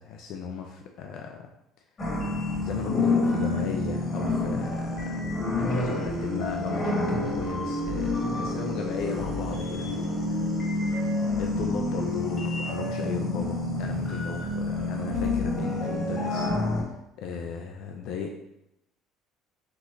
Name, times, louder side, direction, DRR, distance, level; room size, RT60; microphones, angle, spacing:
voice 1, 0.0-1.4 2.6-10.0 10.8-16.5 17.2-18.4, left 6 dB, 65° left, 3 dB, 0.5 m, -36 dB
sound 1, 2.0-16.8, left 2 dB, 30° left, 1.4 m, -28 dB
5.9 x 3.1 x 2.6 m, 0.85 s
cardioid pair, 140°, 0 cm